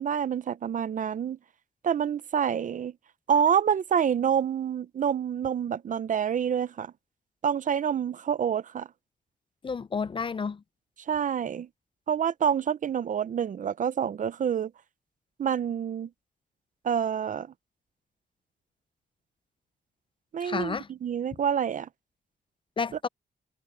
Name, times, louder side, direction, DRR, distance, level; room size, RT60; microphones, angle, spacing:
voice 1, 0.0-1.4 1.8-2.9 3.3-6.9 7.4-8.9 11.1-11.7 12.1-14.7 15.4-16.1 16.8-17.5 20.3-21.9, right 8 dB, 50° right, 0.6 m, -27 dB
voice 2, 9.6-10.6 20.4-20.9 22.8-23.1, left 5 dB, 30° left, 0.5 m, -31 dB
wide cardioid pair, 130°, 17 cm